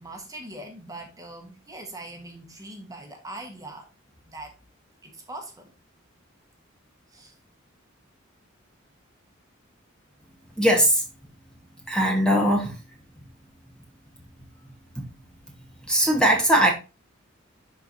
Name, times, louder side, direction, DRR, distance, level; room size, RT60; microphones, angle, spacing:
voice 1, 0.0-3.9 4.2-4.6 5.0-5.7 7.1-7.3, right 1 dB, 15° right, 1.5 m, -41 dB
voice 2, 10.6-11.0 11.9-12.7 15.0-15.1 15.9-16.7, equal, 5° left, 1.4 m, -20 dB
11.5 x 4.6 x 2.7 m
head